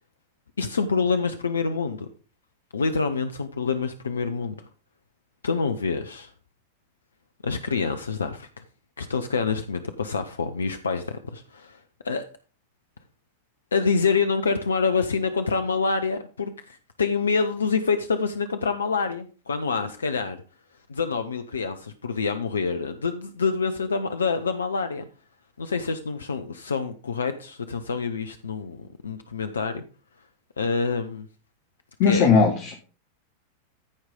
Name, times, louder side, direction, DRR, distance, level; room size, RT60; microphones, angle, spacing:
voice 1, 0.6-2.1 2.7-4.6 5.4-6.3 7.4-8.6 9.0-11.8 12.0-12.2 13.7-20.4 20.9-25.1 25.6-29.8 30.6-31.3 32.1-32.3, left 5 dB, 70° left, 0.6 m, -26 dB
voice 2, 32.0-32.7, left 5 dB, 45° left, 1.6 m, -18 dB
14.5 x 4.8 x 3.8 m
figure-of-eight pair, 90°, 0 cm